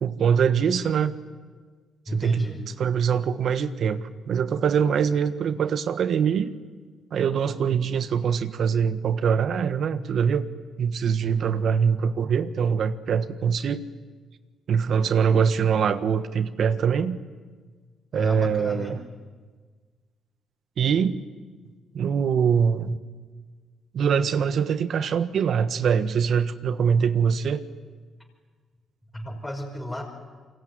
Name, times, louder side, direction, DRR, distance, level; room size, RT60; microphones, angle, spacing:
voice 1, 0.0-1.1 2.1-2.5 2.8-6.5 7.1-10.5 10.8-13.8 14.7-17.2 18.1-19.0 20.8-21.2 21.9-23.0 23.9-27.6, right 7 dB, 60° right, 11 dB, 1.4 m, -23 dB
voice 2, 2.1-2.6 11.2-11.5 18.1-18.9 29.1-30.0, equal, 10° left, -1 dB, 5.5 m, -32 dB
26.5 x 23.5 x 9.4 m, 1.5 s
cardioid pair, 90°, 0 cm